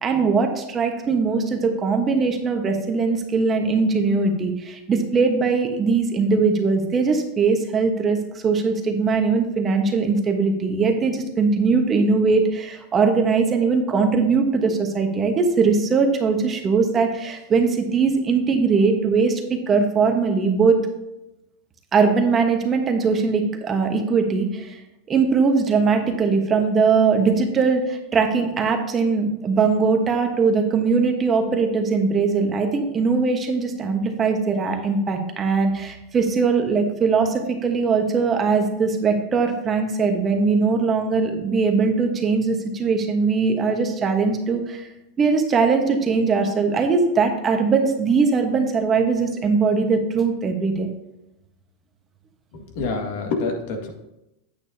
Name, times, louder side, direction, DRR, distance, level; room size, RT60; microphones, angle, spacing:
voice 1, 0.0-20.8 21.9-24.8 25.1-44.9 45.2-50.9, right 4 dB, 25° right, 4 dB, 1.2 m, -20 dB
voice 2, 52.5-53.9, left 3 dB, 60° left, 3 dB, 1.7 m, -27 dB
9.1 x 8.6 x 2.8 m, 0.90 s
supercardioid pair, 135°, 0 cm